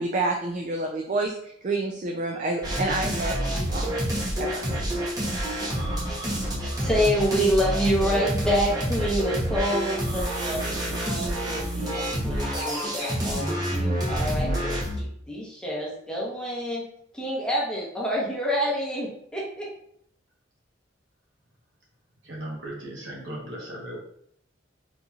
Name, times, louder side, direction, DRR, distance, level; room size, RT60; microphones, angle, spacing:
voice 1, 0.0-3.9 4.4-4.7, right 2 dB, 40° right, 2 dB, 0.3 m, -28 dB
sound 1, 2.6-15.0, right 1 dB, 20° right, 0.8 m, -28 dB
voice 2, 6.5-10.6 11.0-16.8 17.1-19.7, equal, 5° left, -5 dB, 0.9 m, -27 dB
voice 3, 22.2-24.0, right 1 dB, 80° right, -3 dB, 1.2 m, -37 dB
4.0 x 2.9 x 2.4 m, 0.68 s
head